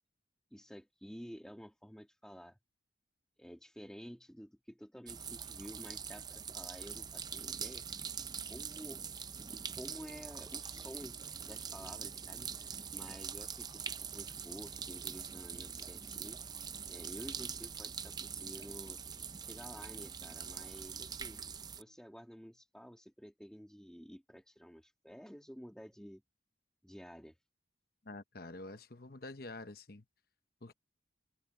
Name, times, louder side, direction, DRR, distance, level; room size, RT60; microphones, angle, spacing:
voice 1, 0.5-2.6 3.4-7.9 8.5-9.0 9.7-11.2 11.5-13.8 14.1-16.4 16.9-19.0 19.4-21.4 21.8-26.2 26.8-27.4, equal, 5° left, 2.1 m, -51 dB
sound 1, 5.1-21.8, right 7 dB, 20° right, 0.5 m, -44 dB
voice 2, 28.0-30.0 30.6-30.7, left 2 dB, 50° left, 1.0 m, -47 dB
open air
head